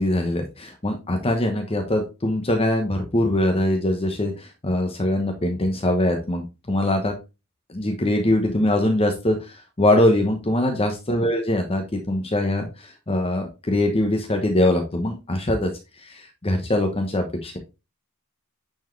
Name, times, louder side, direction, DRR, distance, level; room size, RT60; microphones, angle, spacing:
voice 1, 0.0-6.4 6.7-7.1 7.7-15.7 16.0-17.6, left 1 dB, 25° left, 3 dB, 1.0 m, -22 dB
9.2 x 4.6 x 3.2 m, 0.27 s
head